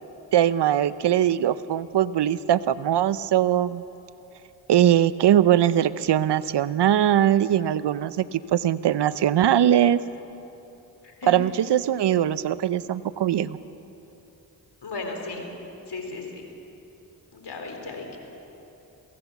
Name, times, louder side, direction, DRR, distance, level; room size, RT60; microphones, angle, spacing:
voice 1, 0.3-3.8 4.7-10.0 11.3-13.6, right 11 dB, 70° right, 16 dB, 0.7 m, -21 dB
voice 2, 14.8-15.5 15.9-16.4 17.3-18.2, left 3 dB, 65° left, 3 dB, 3.9 m, -35 dB
23.0 x 17.0 x 7.1 m, 3.0 s
cardioid pair, 40°, 42 cm